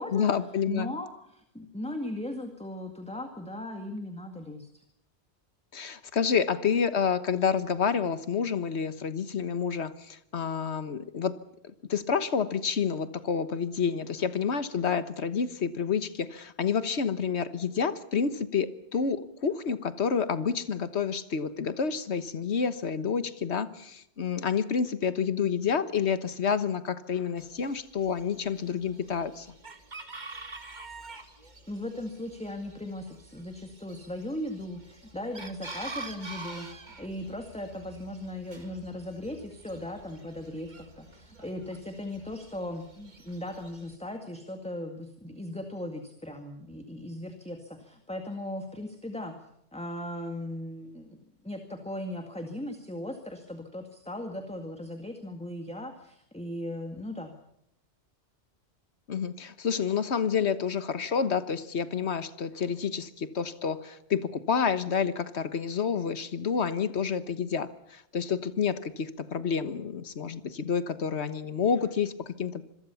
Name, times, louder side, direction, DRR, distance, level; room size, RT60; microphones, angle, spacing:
voice 1, 0.1-0.9 5.7-11.3 11.9-29.5 59.1-72.6, left 6 dB, 75° left, 12 dB, 1.6 m, -29 dB
voice 2, 0.7-4.8 31.7-36.7 37.0-49.4 49.7-57.3, left 1 dB, 5° left, 5 dB, 2.0 m, -38 dB
Chicken rooster, 27.4-44.0, right 3 dB, 40° right, 2.1 m, -47 dB
26.5 x 21.5 x 7.1 m, 0.75 s
omnidirectional pair, 1.1 m